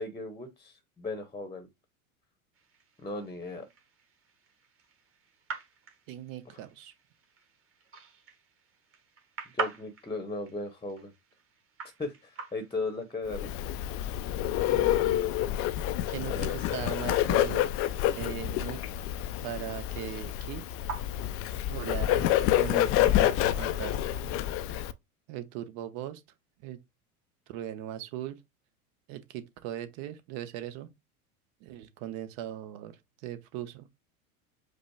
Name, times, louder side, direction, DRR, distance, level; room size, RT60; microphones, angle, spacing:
voice 1, 0.0-1.7 3.0-3.7 6.5-6.6 9.5-11.1 12.0-13.5 16.3-16.5, left 3 dB, 10° left, 0.9 m, -36 dB
sound 1, 2.5-22.1, right 5 dB, 30° right, 1.6 m, -46 dB
voice 2, 6.1-6.9 14.7-14.9 16.1-17.7 18.2-18.8 19.4-20.6 21.7-24.3 25.3-26.2 26.6-26.8 27.5-28.4 29.1-30.9 31.6-33.9, right 12 dB, 50° right, 0.9 m, -39 dB
Bird, 13.3-24.9, left 13 dB, 35° left, 0.4 m, -28 dB
5.2 x 2.1 x 4.6 m
hypercardioid pair, 95°, 43 cm